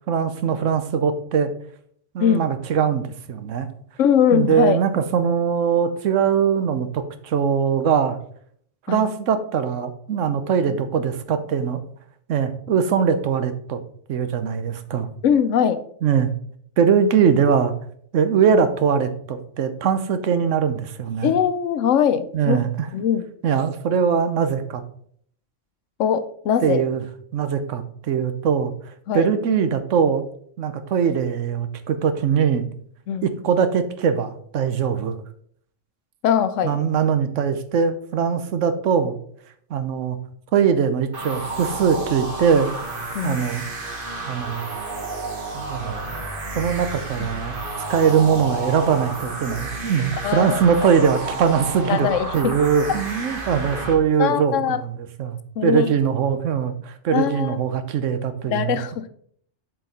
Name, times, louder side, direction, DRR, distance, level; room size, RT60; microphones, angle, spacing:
voice 1, 0.1-1.5 2.1-3.7 4.3-8.2 8.9-11.8 12.3-13.8 14.1-15.1 16.0-16.3 16.8-17.7 18.1-21.3 22.3-22.9 23.4-24.8 26.6-27.0 27.3-28.7 29.1-30.2 30.6-32.6 33.2-35.2 36.6-39.2 39.7-40.2 40.5-42.7 43.2-43.7 44.3-44.7 45.5-46.1 46.5-47.6 47.9-52.1 52.3-54.9 55.2-58.8, right 7 dB, 80° right, 10 dB, 1.1 m, -21 dB
voice 2, 4.0-4.8 8.9-9.0 15.2-15.8 21.2-22.6 22.9-23.3 26.0-26.8 29.1-29.3 33.1-33.3 36.2-36.8 43.1-43.5 47.2-47.3 50.2-50.9 51.9-52.5 54.2-54.8 55.6-55.9 57.1-57.6 58.5-59.1, left 8 dB, 85° left, 12 dB, 1.0 m, -21 dB
sound 1, 41.1-53.9, right 2 dB, 45° right, 1.3 m, -31 dB
7.7 x 4.6 x 4.1 m, 0.63 s
omnidirectional pair, 1.3 m